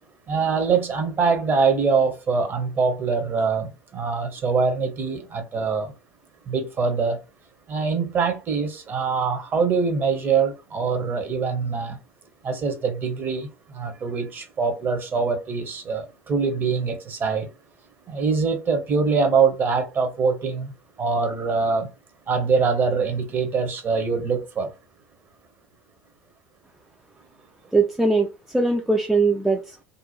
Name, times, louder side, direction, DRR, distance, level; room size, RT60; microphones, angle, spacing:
voice 1, 0.3-5.9 6.5-7.2 7.7-12.0 12.4-17.5 18.1-20.7 21.0-21.9 22.3-24.7, right 5 dB, 30° right, 0.8 m, -23 dB
voice 2, 27.7-29.8, right 3 dB, 5° right, 0.3 m, -21 dB
2.7 x 2.1 x 2.8 m
figure-of-eight pair, 70°, 7 cm